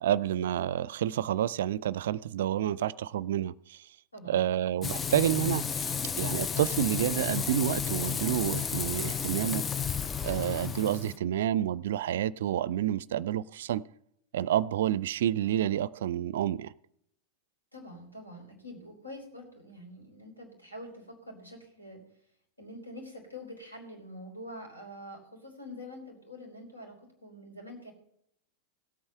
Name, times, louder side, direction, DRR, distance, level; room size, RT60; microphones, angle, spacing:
voice 1, 0.0-3.8 4.3-5.9 6.2-9.6 10.2-13.8 14.3-16.7, right 11 dB, 60° right, 0.4 m, -29 dB
Frying (food), 4.8-11.2, left 7 dB, 20° left, 0.4 m, -32 dB
voice 2, 11.0-11.5 17.7-22.0 22.6-27.9, left 1 dB, 85° left, 3.9 m, -46 dB
17.0 x 8.7 x 5.7 m
figure-of-eight pair, 90°, 0 cm